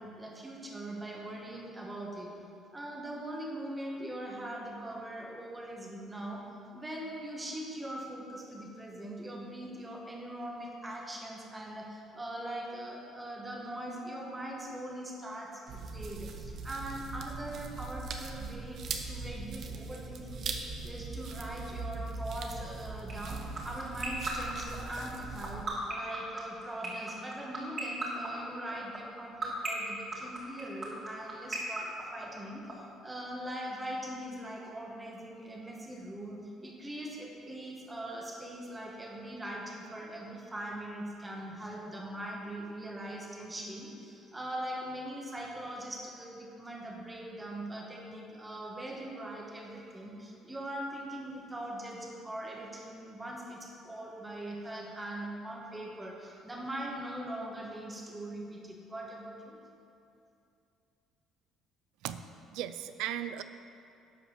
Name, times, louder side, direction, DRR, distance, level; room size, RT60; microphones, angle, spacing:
voice 1, 0.0-2.3 2.7-59.6, right 1 dB, 15° right, -1 dB, 1.4 m, -41 dB
sound 1, 15.7-25.6, right 4 dB, 55° right, 0.9 m, -40 dB
sound 2, 23.1-32.7, right 4 dB, 35° right, 2.3 m, -34 dB
voice 2, 62.5-63.4, right 11 dB, 90° right, 12 dB, 0.4 m, -36 dB
11.5 x 5.2 x 6.6 m, 2.6 s
cardioid pair, 130°, 0 cm